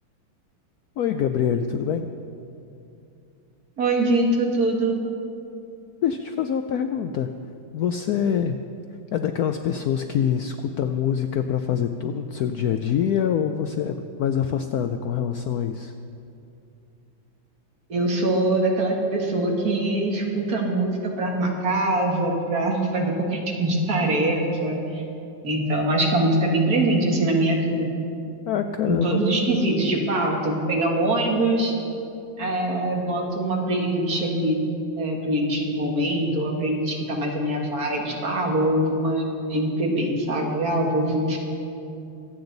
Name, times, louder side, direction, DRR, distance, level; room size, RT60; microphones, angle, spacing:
voice 1, 1.0-2.1 6.0-7.3 7.7-8.6 9.1-15.9 28.5-29.2, left 8 dB, 85° left, 7 dB, 0.8 m, -25 dB
voice 2, 3.8-5.0 17.9-25.0 25.4-27.9 28.9-31.8 32.4-34.6 35.0-41.4, right 1 dB, 50° right, 0 dB, 2.1 m, -23 dB
25.0 x 8.8 x 4.0 m, 2.7 s
omnidirectional pair, 2.2 m